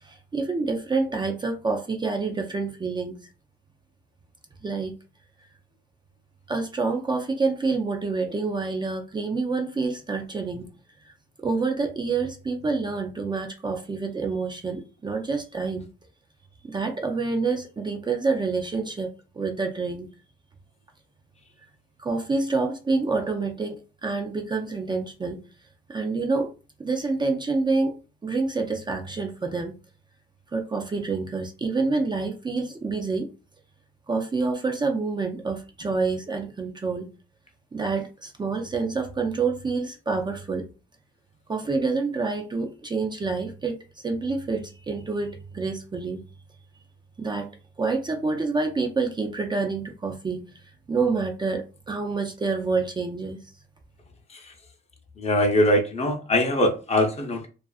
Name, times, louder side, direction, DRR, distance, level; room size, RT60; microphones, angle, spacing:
voice 1, 0.0-3.2 4.6-4.9 6.5-10.7 11.4-15.9 16.6-20.1 22.0-25.4 25.9-26.5 26.8-28.0 28.2-29.7 30.5-33.3 34.1-37.1 37.7-40.7 41.5-43.8 44.0-46.2 47.2-47.5 47.8-50.4 50.9-53.4, right 4 dB, 20° right, 0.4 m, -27 dB
voice 2, 55.2-57.5, left 1 dB, 30° left, 0.7 m, -22 dB
2.5 x 2.4 x 2.3 m
cardioid pair, 90°, 20 cm